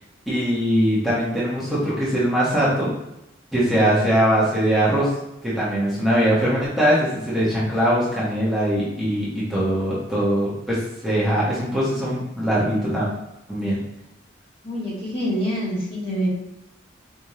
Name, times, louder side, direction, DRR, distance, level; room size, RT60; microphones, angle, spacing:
voice 1, 0.3-2.9 3.5-5.1 5.4-13.1 13.5-13.8, equal, ahead, -9 dB, 1.0 m, -21 dB
voice 2, 14.6-16.3, equal, 30° left, -6 dB, 1.2 m, -26 dB
4.8 x 2.5 x 2.8 m, 0.86 s
head